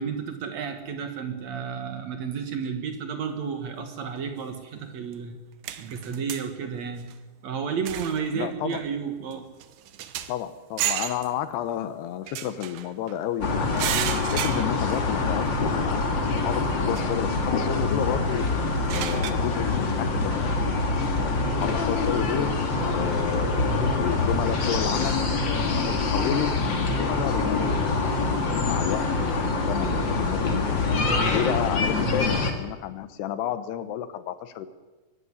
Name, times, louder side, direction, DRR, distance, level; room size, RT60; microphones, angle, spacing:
voice 1, 0.0-5.4 5.8-7.1 7.4-9.4, right 6 dB, 70° right, 7 dB, 1.7 m, -32 dB
sound 1, 5.1-5.2 5.6-6.5 7.0-7.1 7.8-8.3 8.7-8.9 9.3-9.4 9.6-10.4 10.8-11.3 12.3-13.2 13.8-15.0 15.5-15.6 17.0-17.1 18.6-19.3, right 11 dB, 85° right, 1.8 m, -32 dB
voice 2, 8.3-8.8 10.3-18.5 18.9-20.6 21.0-21.3 21.6-22.5 22.9-27.6 28.4-30.8 31.3-34.7, left 11 dB, 75° left, 12 dB, 2.8 m, -31 dB
sound 2, 13.4-32.5, left 3 dB, 40° left, 1.7 m, -25 dB
23.0 x 11.5 x 9.7 m, 1.2 s
omnidirectional pair, 5.2 m